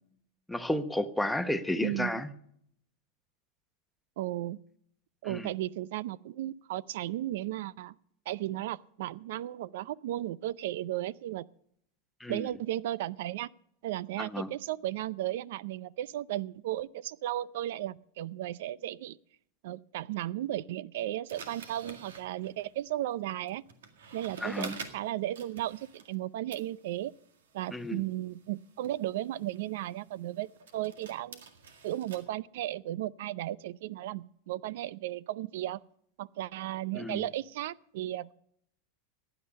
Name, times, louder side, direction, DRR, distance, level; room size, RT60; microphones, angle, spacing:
voice 1, 0.5-2.3 5.2-5.5 12.2-12.5 14.2-14.5 24.4-24.8 27.7-28.0 36.9-37.2, left 1 dB, 5° left, 9 dB, 1.0 m, -32 dB
voice 2, 1.8-2.2 4.2-4.6 5.2-7.9 8.3-11.5 12.3-13.5 13.8-19.2 19.6-23.6 24.1-27.1 27.5-31.4 31.8-35.8 36.2-38.3, right 14 dB, 70° right, 22 dB, 0.5 m, -35 dB
sound 1, 21.3-26.2 26.5-32.2, right 5 dB, 90° right, 1.9 m, -49 dB
15.5 x 9.9 x 5.3 m, 0.69 s
supercardioid pair, 125°, 0 cm